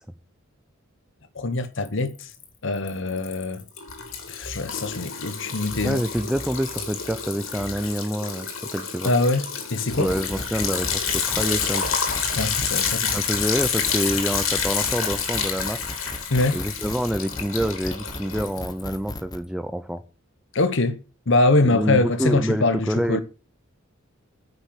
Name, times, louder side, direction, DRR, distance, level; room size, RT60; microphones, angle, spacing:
voice 1, 1.3-2.3 2.6-3.6 4.3-6.0 9.0-10.1 12.3-13.2 16.3-16.6 20.5-21.0 21.3-23.2, left 2 dB, 65° left, 1.1 m, -23 dB
Liquid, 1.8-2.4 2.8-18.9, left 6 dB, 80° left, 3.0 m, -28 dB
voice 2, 5.8-9.1 10.0-12.0 13.1-15.8 16.5-20.0 21.6-23.2, equal, 5° right, 0.6 m, -27 dB
sound 1, 9.9-19.4, left 1 dB, 20° left, 1.0 m, -36 dB
9.8 x 6.5 x 8.5 m
head